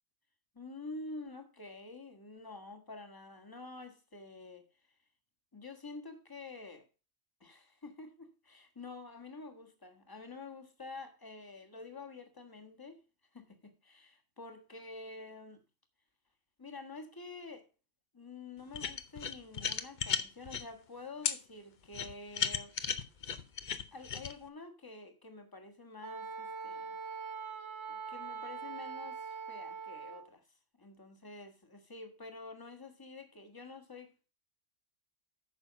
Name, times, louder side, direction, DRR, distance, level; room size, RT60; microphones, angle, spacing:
voice 1, 0.5-4.7 5.5-6.9 7.4-13.0 13.3-15.6 16.6-17.7 18.1-22.7 23.9-27.0 27.9-30.5 30.8-34.3, left 3 dB, 20° left, 1.5 m, -48 dB
sound 1, 18.7-20.6 21.2-21.4 21.9-24.3, left 6 dB, 45° left, 0.8 m, -34 dB
Wind instrument woodwind instrument, 26.0-30.3, right 5 dB, 30° right, 0.6 m, -42 dB
9.4 x 6.2 x 5.1 m
omnidirectional pair, 1.2 m